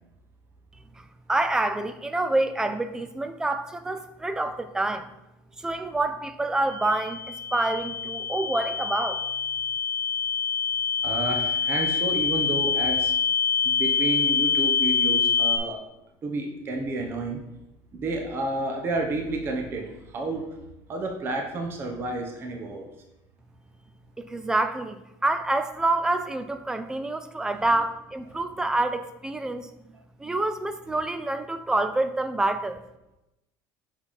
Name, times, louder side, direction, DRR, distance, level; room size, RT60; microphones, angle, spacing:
voice 1, 1.0-5.1 5.6-9.2 24.2-29.7 30.2-32.8, right 2 dB, 10° right, 10 dB, 0.4 m, -27 dB
sound 1, 6.7-15.6, left 6 dB, 20° left, 1.8 m, -25 dB
voice 2, 11.0-13.1 13.6-15.8 16.2-17.4 17.9-20.6 20.9-22.8 27.6-27.7, right 2 dB, 30° right, 3 dB, 0.8 m, -30 dB
5.7 x 5.6 x 4.1 m, 0.91 s
cardioid pair, 160°, 8 cm